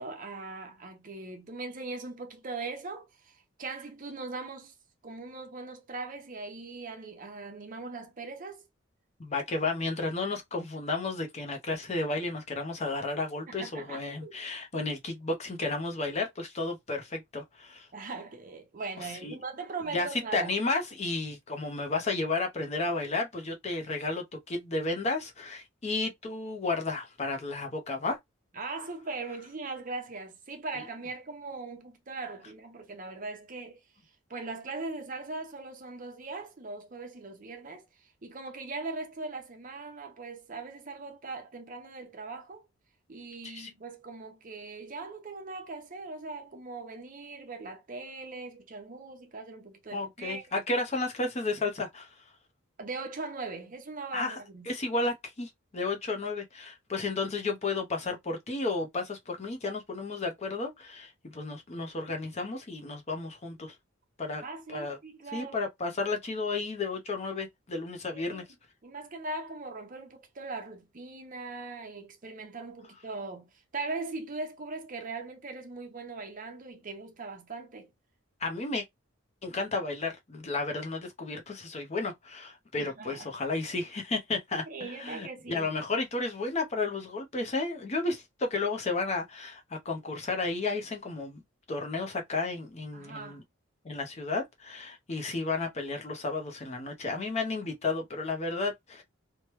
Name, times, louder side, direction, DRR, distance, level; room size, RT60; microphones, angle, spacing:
voice 1, 0.0-4.7 5.0-8.6 13.5-14.3 17.9-20.6 28.5-33.8 34.3-42.7 43.1-50.4 52.8-54.7 64.4-65.6 68.1-68.4 68.8-77.9 82.8-83.4 84.7-85.7 92.9-93.4, right 3 dB, 40° right, 0.7 m, -40 dB
voice 2, 9.2-17.9 19.2-19.3 19.9-28.2 30.8-30.9 43.4-43.7 49.9-52.2 54.1-54.4 54.7-63.7 64.2-64.4 64.7-65.0 65.3-68.4 78.4-78.8 79.4-91.4 91.7-93.4 93.8-99.0, left 3 dB, 30° left, 0.6 m, -32 dB
3.0 x 2.1 x 3.0 m
head